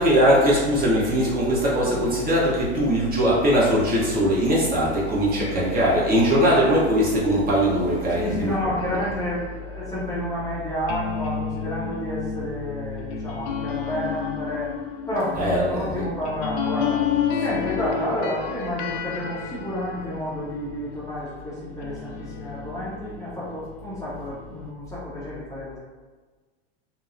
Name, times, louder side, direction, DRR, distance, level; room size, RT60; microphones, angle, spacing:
voice 1, 0.0-8.5 15.3-16.1, equal, 30° right, -6 dB, 0.9 m, -20 dB
voice 2, 8.1-14.7 15.1-17.0 17.4-25.8, left 1 dB, 10° left, -9 dB, 0.6 m, -30 dB
sound 1, 8.8-21.3 21.8-24.7, left 7 dB, 60° left, 0.4 m, -32 dB
2.8 x 2.0 x 2.5 m, 1.3 s
hypercardioid pair, 100°, 32 cm